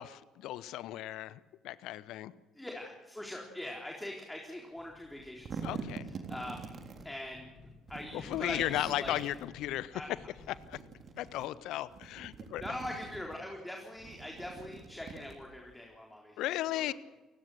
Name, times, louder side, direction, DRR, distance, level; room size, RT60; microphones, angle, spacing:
voice 1, 0.0-2.3 5.6-6.1 8.1-10.0 10.5-10.8 11.2-12.6 16.4-16.9, left 14 dB, 65° left, 18 dB, 0.8 m, -36 dB
voice 2, 2.5-5.8 6.3-7.5 7.9-9.2 9.9-10.1 12.6-16.4 16.7-16.9, left 1 dB, 10° left, 0 dB, 4.0 m, -42 dB
sound 1, 4.8-5.5 5.8-11.8, left 3 dB, 45° left, 5.2 m, -55 dB
sound 2, 5.1-7.1 7.9-9.5 10.4-11.5 11.8-13.4 13.9-15.7, right 5 dB, 45° right, 3.3 m, -45 dB
29.0 x 17.0 x 6.4 m, 1.2 s
figure-of-eight pair, 45°, 0 cm